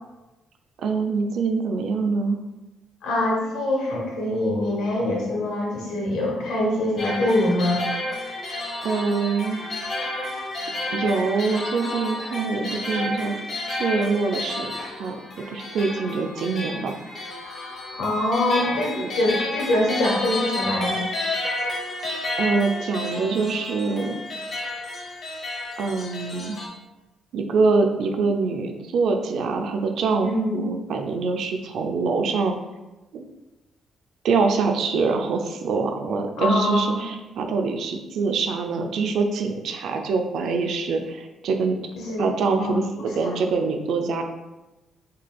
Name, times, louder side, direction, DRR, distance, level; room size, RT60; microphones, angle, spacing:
voice 1, 0.8-2.4 8.8-9.6 10.9-13.4 13.7-14.7 15.0-15.2 15.5-17.0 19.0-19.1 22.4-24.2 25.8-26.6 27.3-32.5 33.1-33.2 34.2-41.8 42.2-44.2, right 4 dB, 75° right, 4 dB, 0.4 m, -24 dB
voice 2, 3.0-7.8 18.0-21.0 30.2-30.6 36.4-37.0 42.0-42.3 42.6-42.7 43.0-43.3, left 1 dB, 85° left, -2 dB, 1.0 m, -24 dB
sound 1, 7.0-26.7, left 2 dB, 50° left, 0.9 m, -31 dB
3.9 x 3.2 x 2.3 m, 1.1 s
cardioid pair, 90°, 0 cm